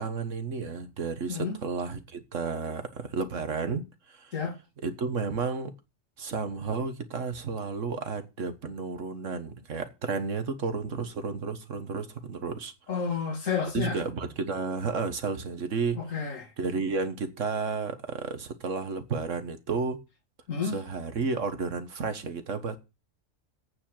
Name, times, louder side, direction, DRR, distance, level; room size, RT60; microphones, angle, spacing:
voice 1, 0.0-4.3 4.8-5.7 6.2-12.7 13.7-16.0 16.6-20.0 20.6-22.8, right 4 dB, 70° right, 1.7 m, -32 dB
voice 2, 12.9-14.0 15.9-16.5 20.5-20.8, left 6 dB, 75° left, 2.5 m, -30 dB
8.7 x 7.6 x 8.7 m
omnidirectional pair, 1.4 m